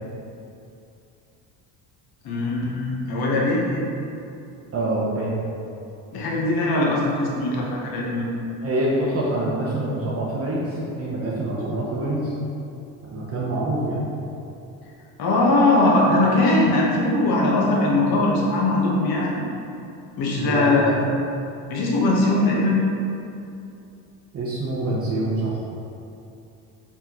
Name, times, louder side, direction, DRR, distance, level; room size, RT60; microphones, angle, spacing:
voice 1, 2.2-3.8 6.1-8.3 15.2-19.4 20.2-21.0 21.7-22.8, left 2 dB, 60° left, -3 dB, 1.2 m, -20 dB
voice 2, 4.7-5.3 8.6-12.3 13.1-14.1 20.4-21.0 24.3-25.6, right 1 dB, 35° right, -6 dB, 0.8 m, -25 dB
4.5 x 3.8 x 3.0 m, 2.7 s
supercardioid pair, 85°, 43 cm